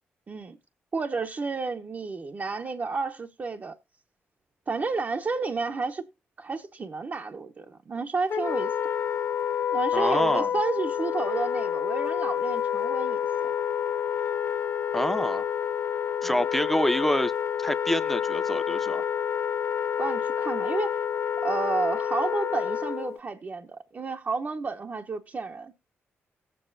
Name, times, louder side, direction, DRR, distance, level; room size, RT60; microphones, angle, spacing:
voice 1, 0.3-0.6 0.9-3.7 4.7-6.1 6.4-8.8 9.7-13.5 16.2-16.4 20.0-21.0 21.4-25.7, right 4 dB, 45° right, 0.9 m, -31 dB
Wind instrument woodwind instrument, 8.3-23.2, left 8 dB, 60° left, 0.6 m, -28 dB
voice 2, 9.9-10.5 14.9-15.5 16.2-17.3 17.6-19.0, equal, 5° left, 0.7 m, -27 dB
18.0 x 7.8 x 2.6 m
cardioid pair, 65°, 5 cm